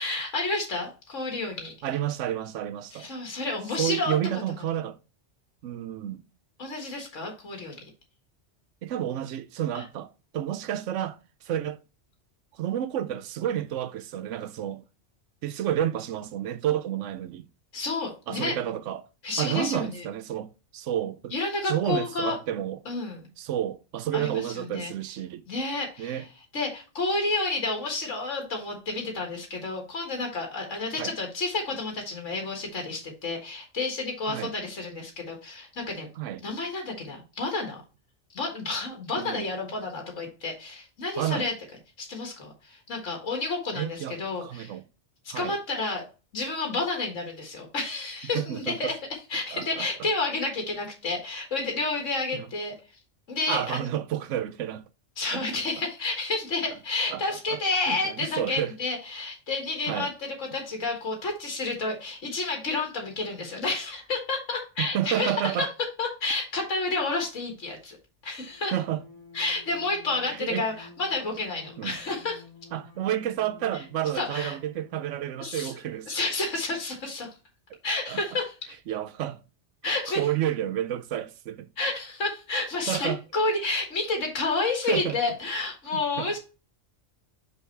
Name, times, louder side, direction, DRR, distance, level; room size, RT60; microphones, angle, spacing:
voice 1, 0.0-1.7 2.9-4.1 6.6-7.8 9.7-9.8 17.7-18.6 19.2-20.1 21.3-22.4 22.9-23.2 24.1-24.9 25.5-26.2 26.5-36.1 36.4-37.8 38.3-41.5 42.0-44.8 45.2-46.0 46.3-48.9 49.3-52.7 53.3-53.9 55.2-65.7 66.0-68.0 68.2-68.7 69.3-72.4 73.7-73.8 74.2-74.6 75.4-75.7 76.1-77.3 77.8-78.5 79.8-80.2 81.8-86.4, left 3 dB, 85° left, 2.0 m, -30 dB
voice 2, 1.8-3.1 3.8-5.0 5.6-6.2 8.8-11.8 12.5-14.8 15.4-17.5 18.3-19.0 19.4-21.3 21.6-22.8 23.4-25.4 26.0-26.3 31.0-31.1 34.3-34.5 36.2-36.4 39.2-39.4 41.2-41.5 43.7-44.8 45.3-45.6 48.3-48.9 49.5-49.9 52.3-52.5 53.5-54.8 55.3-55.4 57.1-57.2 57.5-57.6 57.9-58.7 59.9-60.1 64.8-65.7 68.7-69.0 70.3-70.7 71.8-72.0 72.7-76.1 78.1-78.2 78.9-79.4 79.8-81.7 82.9-83.2 84.9-85.2 85.9-86.4, right 11 dB, 85° right, 0.9 m, -30 dB
sound 1, 68.4-75.2, left 5 dB, 30° right, 2.1 m, -51 dB
5.6 x 4.1 x 4.5 m
omnidirectional pair, 1.2 m